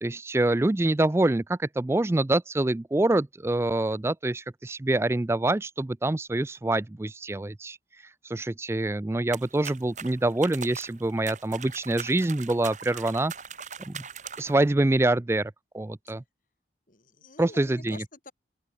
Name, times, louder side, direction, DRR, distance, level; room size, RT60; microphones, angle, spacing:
voice 1, 0.0-13.3 13.9-14.0 14.4-16.2 17.4-18.0, right 2 dB, 15° right, 0.3 m, -26 dB
sound 1, 9.3-14.6, right 7 dB, 40° right, 5.9 m, -41 dB
voice 2, 16.9-18.3, left 3 dB, 45° left, 3.9 m, -46 dB
open air
head